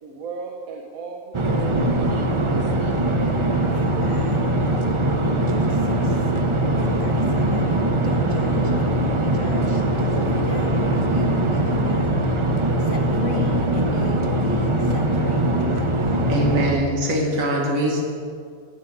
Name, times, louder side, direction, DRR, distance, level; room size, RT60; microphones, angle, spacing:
voice 1, 0.0-2.7, right 4 dB, 90° right, 0 dB, 1.2 m, -37 dB
sound 1, 1.3-16.7, right 1 dB, 35° right, 0.5 m, -21 dB
voice 2, 3.7-4.5 5.4-6.2 6.8-12.3 12.8-16.0, left 6 dB, 80° left, 5 dB, 0.4 m, -35 dB
voice 3, 16.3-18.0, right 1 dB, 70° right, -1 dB, 1.8 m, -22 dB
9.9 x 7.8 x 5.0 m, 2.1 s
omnidirectional pair, 1.5 m